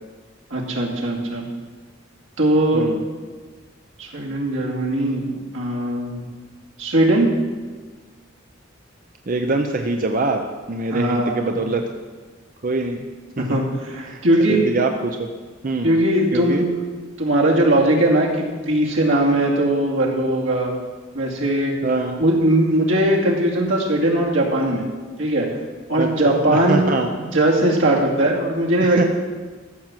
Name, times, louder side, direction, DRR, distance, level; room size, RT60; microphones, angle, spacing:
voice 1, 0.5-1.4 2.4-2.9 4.0-6.2 6.8-7.3 10.9-11.5 13.4-14.6 15.8-16.7 17.2-20.7 21.1-21.7 22.2-24.9 25.2-25.5 25.9-26.8 27.2-29.1, right 1 dB, 85° right, -2 dB, 2.4 m, -19 dB
voice 2, 9.3-10.4 10.7-11.8 12.6-13.1 13.4-13.6 14.1-14.2 14.5-15.3 15.6-16.0 16.3-16.6 21.8-22.2 26.0-27.1 28.8-29.0, right 3 dB, 45° right, 4 dB, 0.7 m, -23 dB
14.0 x 6.0 x 7.5 m, 1.4 s
head